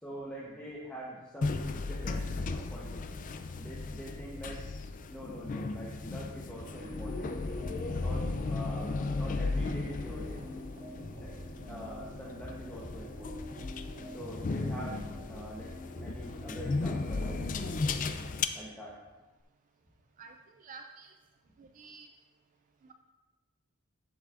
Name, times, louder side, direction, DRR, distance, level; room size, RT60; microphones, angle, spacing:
voice 1, 0.0-3.3 3.6-4.6 5.1-7.3 7.9-10.4 11.2-11.3 11.7-13.3 14.1-15.0 15.3-15.7 16.0-17.4 18.5-18.9, equal, 5° left, -7 dB, 0.9 m, -44 dB
sound 1, 1.4-18.4, left 3 dB, 35° left, 0.4 m, -36 dB
sound 2, 6.5-18.1, equal, 60° right, 2.4 m, -46 dB
voice 2, 20.2-21.1 21.6-22.1 22.8-22.9, right 4 dB, 35° right, 5 dB, 0.3 m, -50 dB
10.5 x 7.2 x 2.5 m, 1.2 s
head